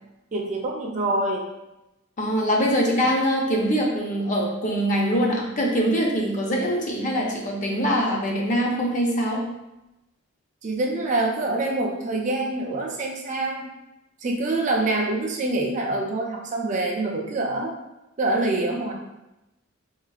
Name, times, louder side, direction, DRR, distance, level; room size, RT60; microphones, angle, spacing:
voice 1, 0.3-1.5 10.6-13.7 14.2-17.7 18.2-18.9, right 2 dB, 35° right, -1 dB, 0.4 m, -25 dB
voice 2, 2.2-9.5, equal, 40° left, -2 dB, 0.6 m, -23 dB
3.7 x 2.4 x 2.3 m, 0.95 s
head